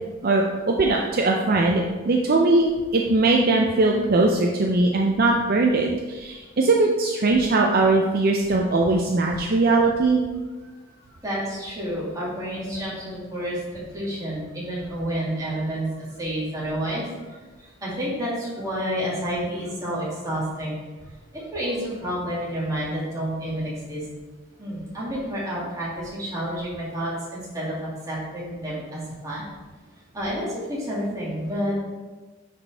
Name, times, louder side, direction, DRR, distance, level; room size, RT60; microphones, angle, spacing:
voice 1, 0.2-2.7 2.9-10.2, right 2 dB, 50° right, 0 dB, 0.5 m, -20 dB
voice 2, 11.2-17.4 17.8-20.8 21.3-24.0 24.6-29.4 30.1-31.7, equal, 15° right, -7 dB, 2.2 m, -29 dB
9.8 x 4.2 x 3.4 m, 1.3 s
head